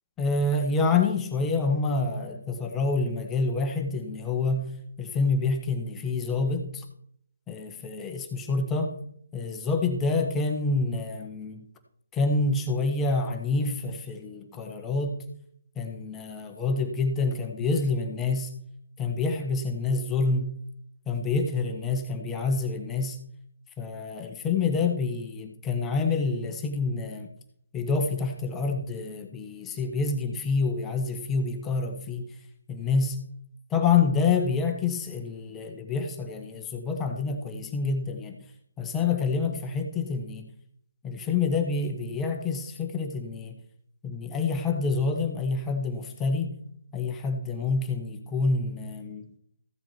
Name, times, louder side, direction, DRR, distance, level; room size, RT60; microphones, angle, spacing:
voice 1, 0.2-4.7 5.0-6.8 7.5-8.9 9.3-11.6 12.1-15.1 15.8-18.5 19.0-20.5 21.1-23.2 23.8-27.3 27.7-32.2 32.7-33.2 33.7-38.3 38.8-40.5 41.0-43.5 44.0-46.5 46.9-49.3, left 4 dB, 10° left, 2 dB, 1.3 m, -27 dB
15.0 x 7.6 x 4.5 m, 0.68 s
figure-of-eight pair, 155°, 0 cm